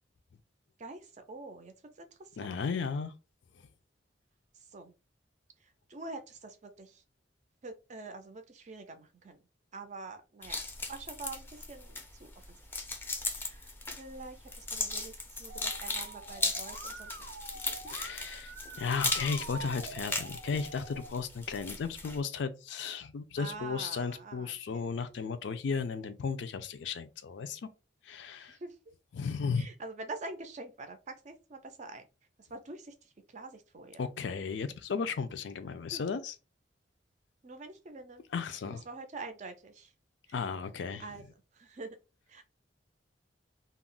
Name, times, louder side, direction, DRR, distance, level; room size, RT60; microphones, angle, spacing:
voice 1, 0.8-2.5 4.5-4.9 5.6-7.0 7.6-9.4 9.7-10.6 10.9-12.7 13.3-17.1 23.4-24.8 28.4-28.8 29.6-32.0 32.4-34.0 35.9-36.0 37.4-38.2 38.6-39.9 40.3-40.4 41.0-41.2 41.5-42.0 42.3-42.5, right 3 dB, 40° right, 0.5 m, -46 dB
voice 2, 2.4-3.1 17.9-27.6 28.1-28.6 29.1-29.7 34.0-36.3 38.3-38.8 40.3-41.0, left 5 dB, 70° left, 0.4 m, -35 dB
sound 1, 10.4-22.2, left 3 dB, 10° left, 0.4 m, -38 dB
Musical instrument, 15.5-21.1, right 3 dB, 90° right, 0.6 m, -46 dB
2.3 x 2.0 x 3.7 m
head